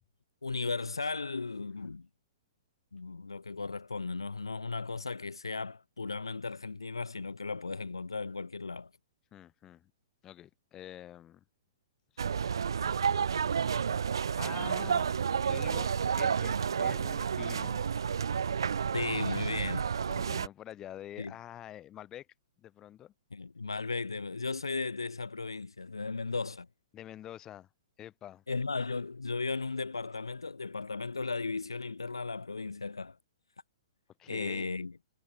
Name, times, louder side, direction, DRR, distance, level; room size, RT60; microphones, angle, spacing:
voice 1, 0.4-2.1 2.9-8.9 18.9-19.9 21.2-21.3 23.3-26.7 28.5-33.2 34.3-34.9, left 4 dB, 80° left, 0.8 m, -36 dB
voice 2, 9.3-9.9 10.2-11.4 12.1-12.5 14.4-15.1 15.4-17.9 20.1-22.3 22.6-23.1 26.9-27.7 28.0-28.4 34.2-34.7, left 12 dB, 20° left, 4.8 m, -47 dB
sound 1, 12.2-20.5, right 7 dB, 65° right, 0.4 m, -30 dB
figure-of-eight pair, 115°, 3 cm